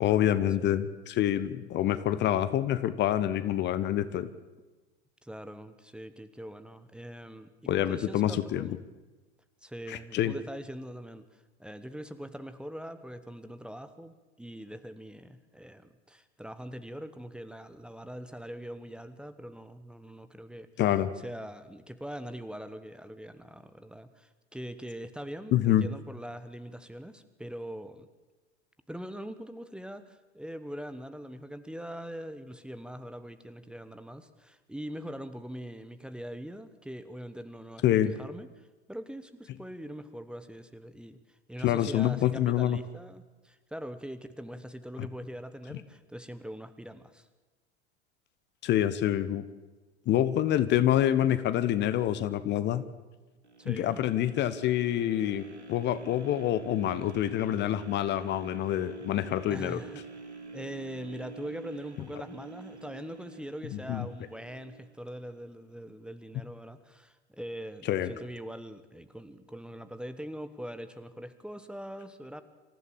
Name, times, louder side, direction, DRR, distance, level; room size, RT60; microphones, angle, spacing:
voice 1, 0.0-4.3 7.7-8.7 9.9-10.3 20.8-21.1 25.5-25.9 37.8-38.1 41.6-42.8 48.6-49.4 50.1-52.8 53.6-55.4 55.7-59.8 63.9-64.1 67.9-68.1, left 12 dB, 35° left, 14 dB, 1.1 m, -26 dB
voice 2, 5.2-8.8 9.6-20.7 21.2-28.1 28.9-47.3 53.6-54.0 59.5-60.0 60.5-72.4, equal, 5° right, 11 dB, 1.2 m, -42 dB
sound 1, 53.4-65.5 66.0-66.1, right 4 dB, 85° right, 1.7 m, -47 dB
26.0 x 15.0 x 7.4 m, 1.2 s
figure-of-eight pair, 85°, 33 cm